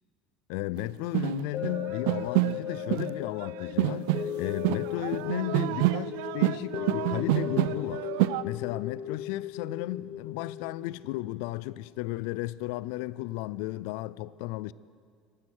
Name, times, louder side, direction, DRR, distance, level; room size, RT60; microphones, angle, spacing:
voice 1, 0.5-8.1 8.4-14.7, left 17 dB, 85° left, 0.4 m, -34 dB
sound 1, 0.8-0.9 1.1-3.2 3.4-8.4, right 18 dB, 90° right, 0.3 m, -28 dB
sound 2, 1.5-11.9 12.4-12.5, left 10 dB, 55° left, 1.1 m, -37 dB
14.5 x 14.0 x 6.3 m
cardioid pair, 130°, 0 cm